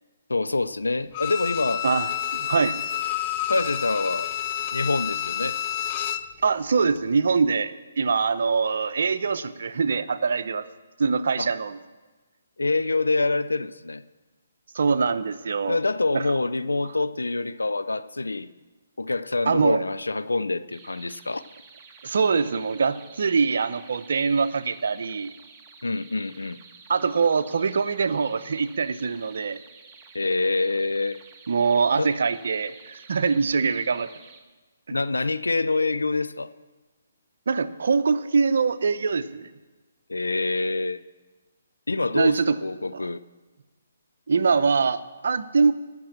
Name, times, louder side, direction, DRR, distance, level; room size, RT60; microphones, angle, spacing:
voice 1, 0.3-1.8 3.5-4.3 4.7-5.6 11.4-11.5 12.6-14.0 15.6-18.5 19.0-21.4 25.8-26.6 30.1-31.2 32.0-32.1 34.9-36.5 40.1-41.0 41.9-43.2, left 3 dB, 85° left, 0.5 m, -26 dB
Bowed string instrument, 1.1-6.3 6.7-6.8, left 11 dB, 35° left, 0.5 m, -29 dB
voice 2, 1.8-2.8 6.4-10.7 11.0-11.8 14.7-15.8 16.1-16.2 19.5-19.8 22.0-25.3 26.9-29.6 31.5-34.1 37.5-39.5 42.1-42.6 44.3-45.7, right 5 dB, 65° right, 0.7 m, -23 dB
sound 1, 20.7-34.4, right 5 dB, 20° right, 1.4 m, -50 dB
17.5 x 6.1 x 7.2 m
figure-of-eight pair, 140°, 0 cm